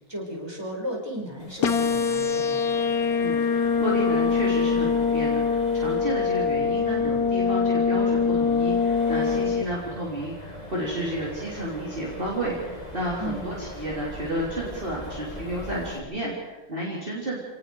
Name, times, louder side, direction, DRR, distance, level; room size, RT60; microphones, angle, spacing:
voice 1, 0.1-2.6 13.2-13.6, equal, 15° right, -1 dB, 5.3 m, -34 dB
Accelerating revving vroom, 1.4-16.0, left 1 dB, 25° left, 3.0 m, -41 dB
sound 1, 1.6-9.6, left 5 dB, 90° left, 1.7 m, -23 dB
voice 2, 3.2-17.4, right 1 dB, 35° right, -4 dB, 3.7 m, -32 dB
29.0 x 18.5 x 4.8 m, 1.1 s
omnidirectional pair, 1.5 m